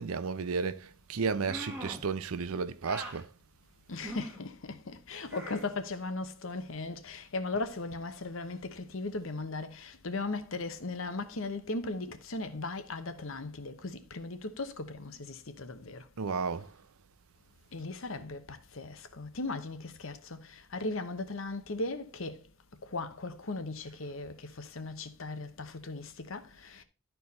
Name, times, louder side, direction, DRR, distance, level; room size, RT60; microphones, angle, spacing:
voice 1, 0.0-3.3 16.2-16.7, right 5 dB, 85° right, 0.6 m, -33 dB
sound 1, 1.5-2.1 2.8-3.2 4.0-4.4 5.3-5.7, right 1 dB, 10° right, 1.3 m, -42 dB
voice 2, 3.9-16.0 17.7-22.4 22.9-26.8, left 3 dB, 70° left, 1.0 m, -38 dB
12.0 x 4.6 x 4.1 m
head